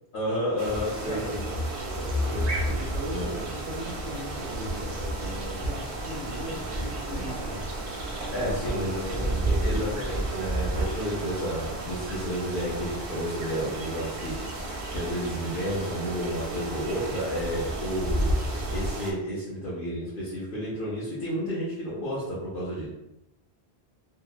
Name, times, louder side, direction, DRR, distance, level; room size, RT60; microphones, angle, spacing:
voice 1, 0.1-2.5 3.1-3.3 8.3-22.9, equal, 60° left, -8 dB, 0.8 m, -31 dB
sound 1, 0.6-18.9, equal, 90° left, 0.9 m, -35 dB
sound 2, 0.6-19.1, right 3 dB, 90° right, 0.9 m, -37 dB
voice 2, 1.1-1.4 2.7-7.6 8.3-9.9, equal, 50° right, -5 dB, 0.6 m, -38 dB
sound 3, 4.3-10.9, right 2 dB, 30° left, 0.4 m, -32 dB
2.8 x 2.0 x 2.3 m, 0.86 s
omnidirectional pair, 1.1 m